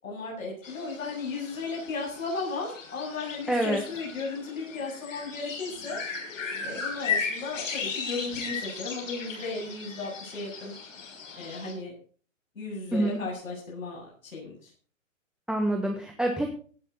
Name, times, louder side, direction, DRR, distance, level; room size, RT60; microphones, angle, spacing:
voice 1, 0.0-6.0 6.6-10.7 11.4-11.9 12.6-14.5, left 3 dB, 85° left, -3 dB, 7.9 m, -35 dB
sound 1, 0.6-11.7, left 5 dB, 70° left, 6.4 m, -36 dB
voice 2, 3.5-3.8 12.9-13.2 15.5-16.5, right 1 dB, ahead, 2 dB, 1.6 m, -26 dB
17.5 x 11.5 x 4.1 m, 0.42 s
hypercardioid pair, 130°, 40 cm